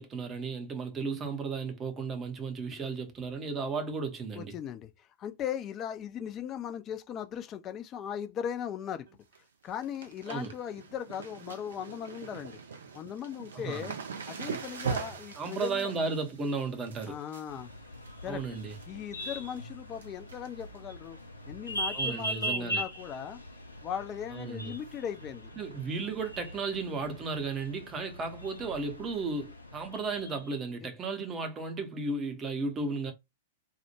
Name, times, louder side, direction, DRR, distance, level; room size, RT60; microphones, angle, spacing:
voice 1, 0.0-4.5 10.3-10.5 13.5-13.9 15.4-17.2 18.2-18.7 21.9-22.8 24.3-24.7 25.5-33.1, right 4 dB, 20° right, 0.6 m, -34 dB
voice 2, 4.4-9.2 9.6-12.6 12.9-14.0 14.3-15.9 17.1-17.7 18.2-18.4 18.9-21.2 21.5-23.4 23.8-25.5, left 9 dB, 30° left, 0.4 m, -38 dB
sound 1, 9.1-9.4 9.6-18.9 19.2-19.6 19.9-20.8 21.1-21.2 22.2-22.4 22.7-22.8 23.2-23.3 24.9-25.0 25.7-25.8, right 6 dB, 65° right, 0.5 m, -42 dB
sound 2, 17.5-30.6, equal, 85° left, 0.5 m, -40 dB
2.1 x 2.0 x 2.9 m
figure-of-eight pair, 100°, 0 cm